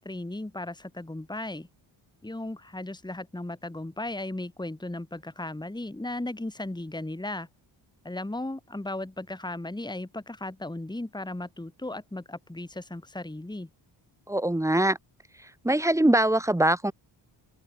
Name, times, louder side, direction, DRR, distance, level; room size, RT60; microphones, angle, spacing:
voice 1, 0.0-1.7 2.2-7.5 8.0-13.7, left 2 dB, 10° left, 3.4 m, -36 dB
voice 2, 14.3-15.0 15.6-16.9, right 1 dB, 5° right, 1.2 m, -22 dB
open air
cardioid pair, 105°, 48 cm